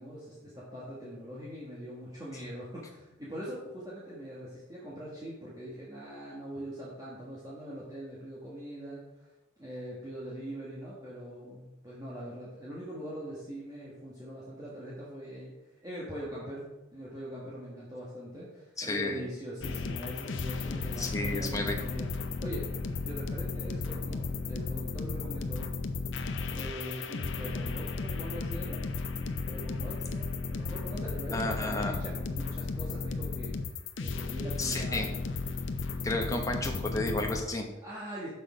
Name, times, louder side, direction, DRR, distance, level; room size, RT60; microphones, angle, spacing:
voice 1, 0.0-9.3 9.6-15.5 15.8-22.1 22.4-22.7 23.0-25.7 26.5-28.8 29.1-33.5 34.0-35.2 37.8-38.3, equal, 20° right, -8 dB, 1.5 m, -42 dB
voice 2, 18.8-19.2 21.0-21.7 31.3-32.0 34.6-35.1 36.0-37.7, left 2 dB, 15° left, 1 dB, 1.0 m, -32 dB
sound 1, 19.6-37.4, left 3 dB, 70° left, 0.6 m, -34 dB
6.5 x 6.2 x 5.0 m, 1.0 s
head